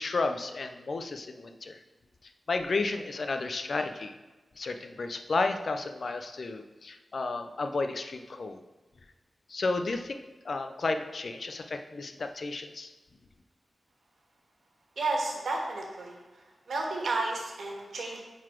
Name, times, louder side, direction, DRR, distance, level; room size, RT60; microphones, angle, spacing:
voice 1, 0.0-1.8 2.2-4.2 4.6-8.6 9.5-10.2 10.4-12.9, left 3 dB, 50° left, 7 dB, 0.5 m, -32 dB
voice 2, 15.0-16.2 16.7-18.2, right 2 dB, 85° right, 0 dB, 1.6 m, -32 dB
9.4 x 4.0 x 4.4 m, 1.2 s
wide cardioid pair, 165°, 0 cm